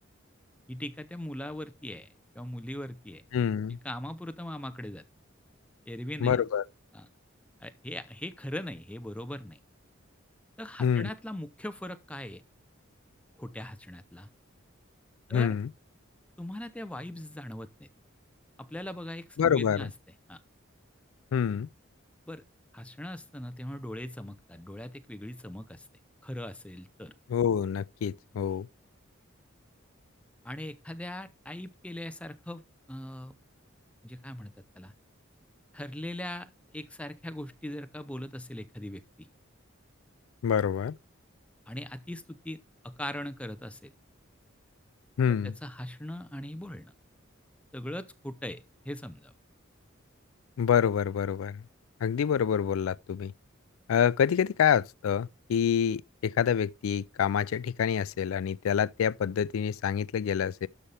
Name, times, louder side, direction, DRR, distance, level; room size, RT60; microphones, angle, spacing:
voice 1, 0.7-2.1 2.3-3.2 3.7-5.0 5.9-6.4 6.9-7.1 7.6-9.6 10.6-12.4 13.4-14.3 15.3-15.6 16.4-17.9 18.6-19.9 20.3-20.4 22.3-22.4 22.7-25.9 26.2-27.1 30.4-32.6 32.9-33.3 34.0-34.9 35.7-39.3 41.7-43.9 45.3-46.9 47.7-49.3, left 1 dB, 5° left, 0.6 m, -40 dB
voice 2, 3.3-3.8 6.2-6.6 10.8-11.1 15.3-15.7 19.4-19.9 21.3-21.7 27.3-28.7 40.4-40.9 45.2-45.5 50.6-51.6 52.0-53.3 53.9-60.7, left 8 dB, 90° left, 0.3 m, -27 dB
12.0 x 5.6 x 3.3 m
head